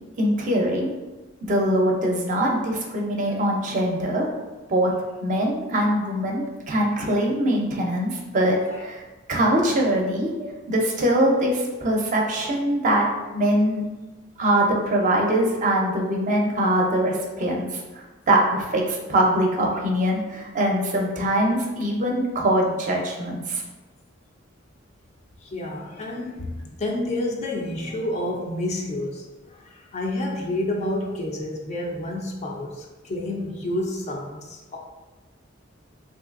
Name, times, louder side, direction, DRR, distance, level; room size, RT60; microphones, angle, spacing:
voice 1, 0.2-0.9 1.5-4.3 4.7-4.9 5.2-9.0 9.3-10.3 10.7-13.0 13.3-13.8 14.4-23.6, right 1 dB, 40° right, 0 dB, 0.5 m, -22 dB
voice 2, 25.4-26.5 26.8-34.8, left 1 dB, 35° left, 0 dB, 0.4 m, -29 dB
3.1 x 2.6 x 2.4 m, 1.2 s
head